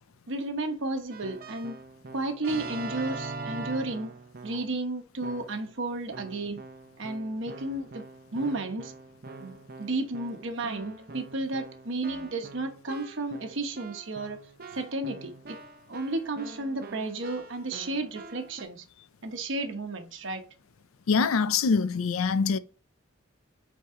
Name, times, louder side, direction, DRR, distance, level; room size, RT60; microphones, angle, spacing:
voice 1, 0.3-1.8 2.1-4.1 4.4-6.6 7.0-8.0 8.3-8.9 9.4-14.4 14.7-15.6 15.9-18.8 19.2-20.4, right 2 dB, 65° right, 1.0 m, -33 dB
Keyboard (musical), 1.1-4.8 5.2-5.7 6.1-18.6, right 3 dB, 45° right, 0.7 m, -43 dB
voice 2, 21.1-22.6, left 5 dB, 90° left, 0.5 m, -24 dB
5.6 x 4.7 x 3.7 m
head